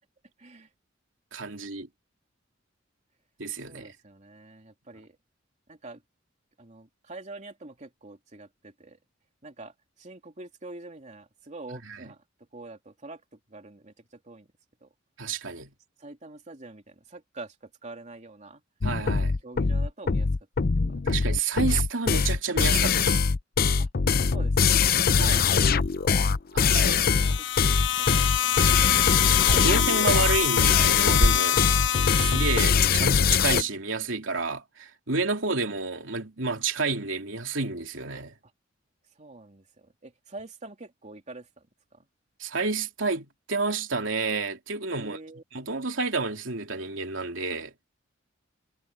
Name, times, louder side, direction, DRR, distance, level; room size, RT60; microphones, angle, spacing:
voice 1, 0.4-0.7 3.6-5.2 5.7-6.0 6.6-9.0 9.4-14.5 14.8-14.9 16.0-18.6 19.4-20.3 20.6-20.7 23.8-23.9 24.3-25.0 26.8-29.1 31.7-31.9 38.4-38.5 39.1-41.7 41.9-42.1 44.9-45.4, right 2 dB, 40° right, 3.0 m, -46 dB
voice 2, 1.3-1.9 3.4-3.9 11.9-12.0 15.2-15.7 18.8-19.4 21.0-23.2 25.1-25.5 26.5-27.4 29.5-31.6 32.2-38.3 42.4-45.2 45.5-47.7, right 4 dB, 80° right, 3.0 m, -30 dB
sound 1, 18.8-33.6, left 5 dB, 50° left, 0.6 m, -22 dB
sound 2, 27.0-33.2, left 12 dB, 70° left, 0.9 m, -26 dB
sound 3, 27.0-27.4 27.7-29.1 29.4-30.9 31.2-32.1, equal, 65° right, 3.1 m, -31 dB
head